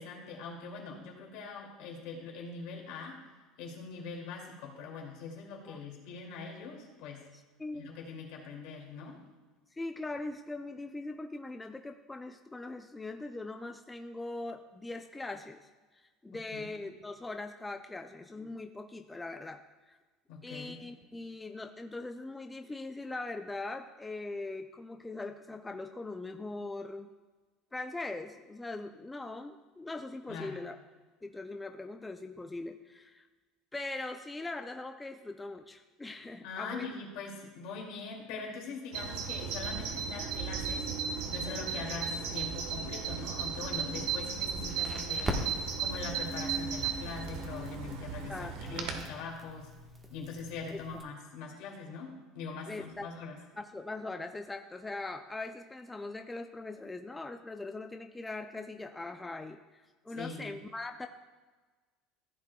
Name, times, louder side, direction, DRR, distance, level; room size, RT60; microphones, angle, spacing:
voice 1, 0.0-3.2 3.6-7.2 7.7-9.2 16.5-16.7 20.3-20.8 30.3-30.6 36.4-40.9 41.3-45.4 45.8-49.7 50.1-53.4 60.2-60.6, left 4 dB, 70° left, 0 dB, 2.4 m, -42 dB
voice 2, 7.3-7.9 9.7-15.7 16.2-19.6 19.9-20.0 20.4-27.1 27.7-30.8 31.2-33.2 33.7-36.9 48.3-49.0 50.7-50.8 52.7-53.1 53.6-61.1, left 2 dB, 10° left, 6 dB, 0.4 m, -41 dB
Bird vocalization bird call bird song, 38.9-49.0, right 6 dB, 75° right, 1.2 m, -35 dB
Crackle, 44.5-51.0, equal, 15° right, 1.3 m, -42 dB
15.0 x 8.0 x 2.3 m, 1.3 s
supercardioid pair, 125°, 0 cm